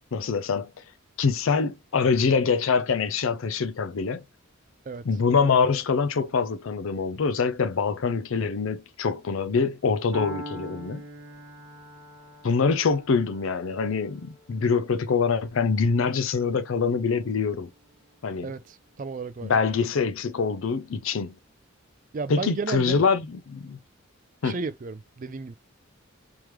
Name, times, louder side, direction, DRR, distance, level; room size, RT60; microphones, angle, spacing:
voice 1, 0.1-0.7 1.2-4.2 5.1-11.0 12.4-17.7 18.2-18.5 19.4-21.4 22.3-23.8 24.4-24.6, left 5 dB, 65° left, 0.5 m, -24 dB
Piano, 10.1-18.1, right 1 dB, 20° right, 1.2 m, -43 dB
voice 2, 18.4-19.5 22.1-23.0 24.4-25.6, right 4 dB, 40° right, 0.4 m, -33 dB
3.5 x 3.1 x 3.1 m
head